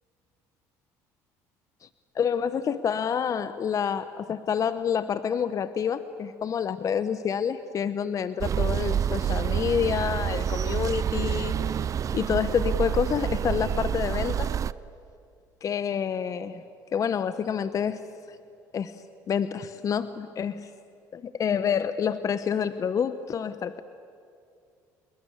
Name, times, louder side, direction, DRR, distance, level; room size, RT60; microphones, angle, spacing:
voice 1, 2.1-11.6 12.1-14.5 15.6-16.6 16.9-18.1 18.7-20.7 21.1-23.8, left 7 dB, 45° left, 13 dB, 1.0 m, -28 dB
sound 1, 8.4-14.7, right 8 dB, 40° right, 0.6 m, -28 dB
28.0 x 21.0 x 8.4 m, 2.4 s
supercardioid pair, 80°, 8 cm